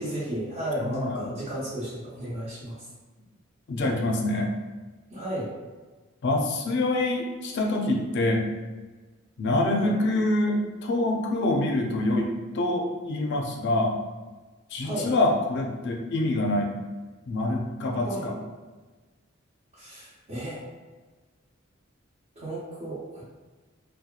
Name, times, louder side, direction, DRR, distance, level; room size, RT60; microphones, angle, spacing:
voice 1, 0.0-2.9 5.1-5.5 9.8-10.0 14.8-15.1 18.0-18.3 19.7-20.6 22.4-23.2, right 1 dB, 35° right, -11 dB, 0.8 m, -33 dB
voice 2, 0.8-1.3 3.7-4.5 6.2-8.4 9.4-13.9 14.7-16.7 17.3-18.3, left 2 dB, 60° left, 1 dB, 0.4 m, -26 dB
2.8 x 2.2 x 2.4 m, 1.3 s
head